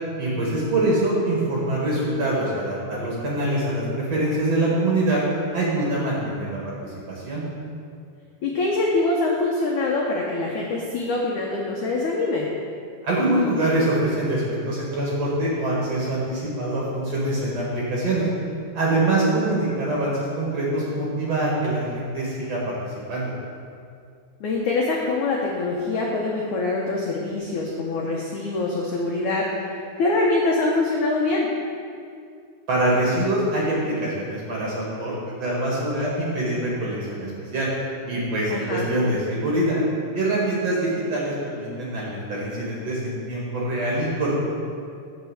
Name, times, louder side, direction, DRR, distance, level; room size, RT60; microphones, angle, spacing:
voice 1, 0.2-5.2 5.5-7.4 13.0-18.3 18.7-23.3 32.7-35.1 35.4-37.7 38.1-39.8 40.1-44.4, right 1 dB, 50° right, -5 dB, 2.2 m, -24 dB
voice 2, 8.4-12.5 24.4-31.5 38.5-38.9, left 2 dB, 75° left, -2 dB, 1.7 m, -24 dB
10.5 x 6.1 x 7.7 m, 2.4 s
omnidirectional pair, 4.9 m